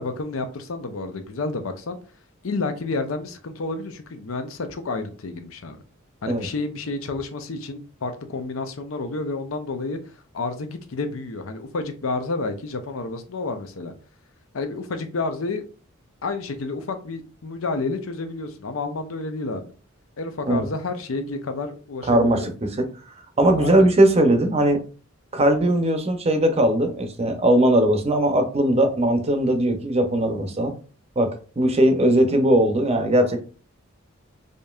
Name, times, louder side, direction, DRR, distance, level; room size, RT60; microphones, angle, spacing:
voice 1, 0.0-2.0 2.4-5.8 6.2-10.0 10.3-13.9 14.5-15.6 16.2-19.7 20.2-22.5 23.6-23.9, left 3 dB, 85° left, 0.6 m, -30 dB
voice 2, 22.1-22.9 23.4-24.8 25.3-30.7 31.2-31.3 31.6-33.4, right 1 dB, 30° right, 0.6 m, -19 dB
5.0 x 2.7 x 2.3 m
head